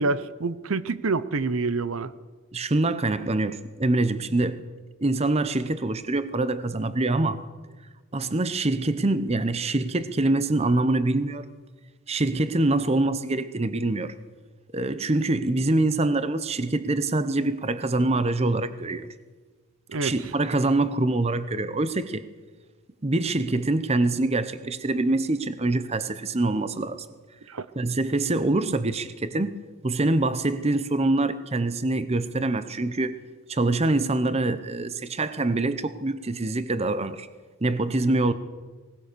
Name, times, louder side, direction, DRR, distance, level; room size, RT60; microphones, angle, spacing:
voice 1, 0.0-2.1 19.9-20.1 27.5-27.7, right 3 dB, 65° right, 0.7 m, -27 dB
voice 2, 2.5-4.6 5.0-7.4 8.1-11.4 12.1-14.1 14.7-19.1 19.9-22.2 23.0-27.1 27.8-33.2 33.5-37.3 37.6-38.3, right 2 dB, 30° right, 0.8 m, -25 dB
20.0 x 19.0 x 6.8 m
head